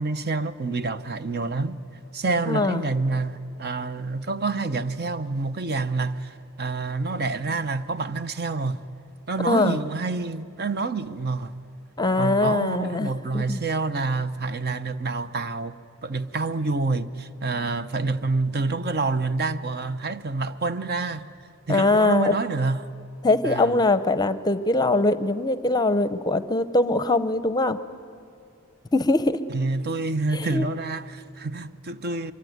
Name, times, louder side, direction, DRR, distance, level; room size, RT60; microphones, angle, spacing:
voice 1, 0.0-1.8 2.1-8.8 9.3-11.6 12.2-15.8 16.0-21.3 21.7-22.9 23.4-23.8 29.5-32.3, right 3 dB, 50° right, 0.8 m, -27 dB
voice 2, 2.5-2.8 9.4-9.8 12.0-13.6 21.7-22.3 23.2-27.8 28.9-29.4 30.3-30.7, left 2 dB, 20° left, 0.7 m, -22 dB
24.5 x 23.0 x 9.4 m
head